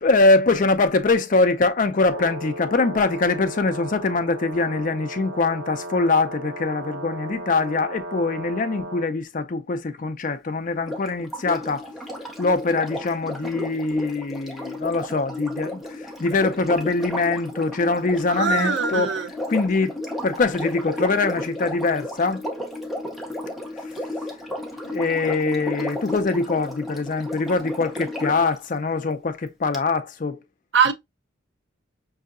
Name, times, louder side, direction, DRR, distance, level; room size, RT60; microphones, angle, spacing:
voice 1, 0.0-11.9 12.4-19.2 19.5-22.4 24.8-30.4, left 3 dB, 40° left, 0.4 m, -23 dB
Brass instrument, 1.9-9.1, right 1 dB, 80° right, 1.0 m, -35 dB
Sink (filling or washing), 10.8-28.6 29.7-29.8, left 1 dB, ahead, 0.6 m, -33 dB
voice 2, 18.3-19.3 30.7-30.9, right 6 dB, 55° right, 0.6 m, -21 dB
5.5 x 2.7 x 2.4 m
head